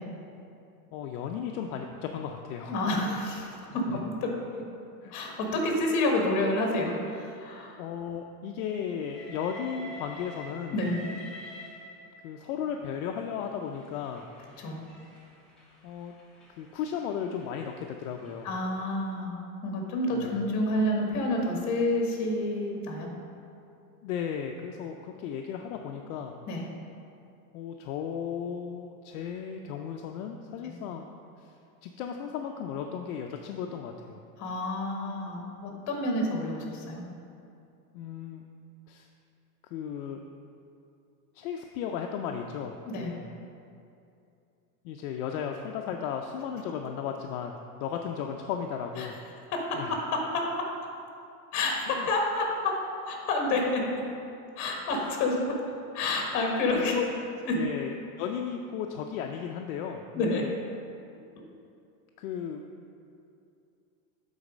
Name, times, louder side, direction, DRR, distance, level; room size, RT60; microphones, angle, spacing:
voice 1, 0.9-2.7 3.9-4.0 5.0-5.2 7.8-10.8 12.2-14.3 15.8-16.2 16.5-18.5 20.1-20.4 24.0-26.3 27.5-31.1 31.4-31.5 31.8-34.2 37.9-38.4 38.9-39.1 39.6-40.2 41.3-43.3 44.8-49.2 49.7-49.9 51.9-52.1 56.7-57.0 57.5-60.5 62.2-62.6, left 8 dB, 65° left, 3 dB, 0.6 m, -35 dB
voice 2, 2.7-4.3 5.1-7.8 10.7-11.0 14.6-14.8 18.4-19.3 19.6-23.1 26.5-26.6 30.6-30.7 34.4-37.0 42.9-43.1 49.0-49.1 49.5-50.7 51.5-52.8 53.0-53.9 54.6-55.6 55.9-57.0 57.5-57.6 60.1-60.4, left 2 dB, 40° left, 1 dB, 1.4 m, -29 dB
Train, 9.0-12.4 13.2-18.5, left 1 dB, ahead, 0.8 m, -48 dB
8.6 x 4.1 x 5.1 m, 2.6 s
supercardioid pair, 150°, 46 cm